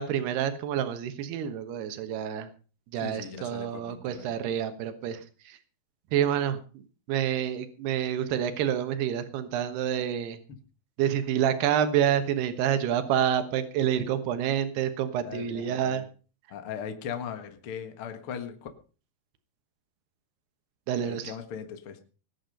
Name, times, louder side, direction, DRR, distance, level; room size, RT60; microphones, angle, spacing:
voice 1, 0.0-2.5 2.9-5.6 6.1-6.8 7.1-10.4 11.0-16.0 20.9-21.3, right 9 dB, 85° right, 9 dB, 3.3 m, -28 dB
voice 2, 3.0-4.3 15.2-16.0 16.5-18.7 20.9-22.0, left 7 dB, 50° left, 7 dB, 1.7 m, -39 dB
19.5 x 8.8 x 5.4 m, 0.37 s
omnidirectional pair, 4.6 m